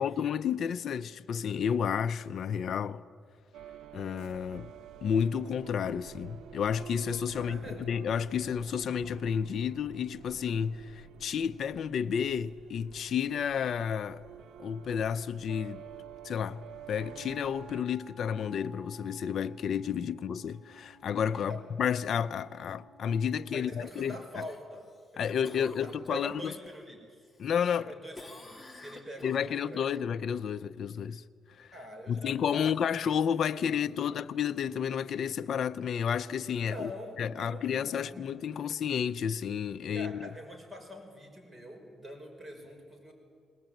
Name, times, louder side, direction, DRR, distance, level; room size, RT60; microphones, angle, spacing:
voice 1, 0.0-3.0 3.9-4.7 5.0-14.2 14.6-15.8 16.2-24.4 25.2-26.3 27.4-27.9 29.2-31.2 31.6-31.7 32.1-36.9 37.2-40.3, left 7 dB, 60° left, 0.5 m, -31 dB
sound 1, 3.5-17.8, right 10 dB, 80° right, 0.8 m, -49 dB
voice 2, 7.3-7.8 21.3-21.6 23.5-24.9 25.1-27.2 27.8-30.2 31.7-34.2 36.7-38.3 39.9-43.1, equal, 15° right, 5.7 m, -45 dB
Wind instrument woodwind instrument, 16.9-23.6, left 1 dB, 50° right, 6.7 m, -55 dB
Cough, 23.8-26.8 27.2-27.8 28.1-29.8 34.3-34.4, left 2 dB, 15° left, 2.7 m, -51 dB
21.0 x 19.0 x 9.1 m
cardioid pair, 90°, 0 cm